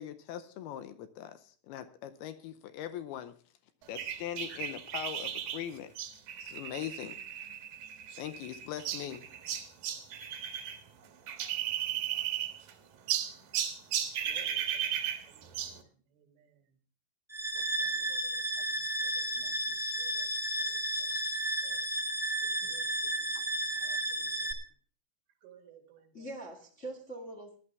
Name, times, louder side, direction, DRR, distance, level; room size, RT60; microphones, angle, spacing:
voice 1, 0.0-3.3 3.9-5.9 6.4-7.2 8.2-9.3, left 10 dB, 75° left, 10 dB, 2.5 m, -41 dB
sound 1, 4.0-10.8 11.0-12.7 13.1-15.8, right 10 dB, 65° right, 2.8 m, -35 dB
voice 2, 14.3-15.0 15.3-16.6 17.6-21.9 22.4-24.5 25.4-26.1, right 8 dB, 85° right, 4 dB, 4.2 m, -59 dB
sound 2, 17.3-24.5, right 1 dB, 5° right, 1.8 m, -33 dB
voice 3, 23.7-24.1 26.1-27.6, right 2 dB, 35° left, 1 dB, 1.1 m, -44 dB
18.5 x 11.5 x 3.5 m, 0.42 s
omnidirectional pair, 4.9 m